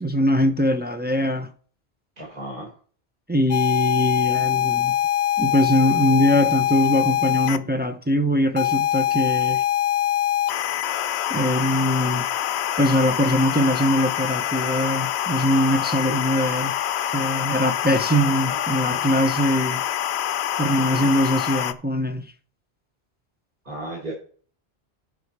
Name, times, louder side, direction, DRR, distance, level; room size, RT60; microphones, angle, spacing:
voice 1, 0.0-1.5 3.3-4.9 5.4-9.6 11.3-12.2 12.8-16.7 17.1-19.8 20.6-22.3, equal, 15° right, 0.4 m, -22 dB
voice 2, 2.2-2.7 16.0-16.2 18.2-19.1 20.7-21.1 23.6-24.1, right 1 dB, 50° right, 4.5 m, -36 dB
sound 1, 3.5-7.6 8.6-21.7, left 11 dB, 85° left, 0.9 m, -24 dB
11.5 x 5.3 x 4.6 m
omnidirectional pair, 1.1 m